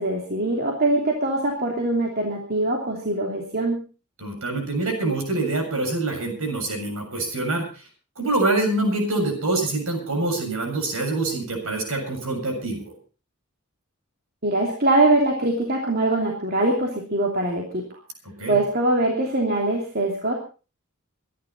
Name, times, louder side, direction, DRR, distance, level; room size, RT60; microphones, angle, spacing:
voice 1, 0.0-3.8 14.4-17.9 18.5-20.3, right 2 dB, 45° right, 0 dB, 3.0 m, -23 dB
voice 2, 4.2-7.7 8.2-12.9 18.4-18.6, right 2 dB, 65° right, 3 dB, 7.2 m, -25 dB
25.0 x 11.5 x 4.1 m, 0.35 s
head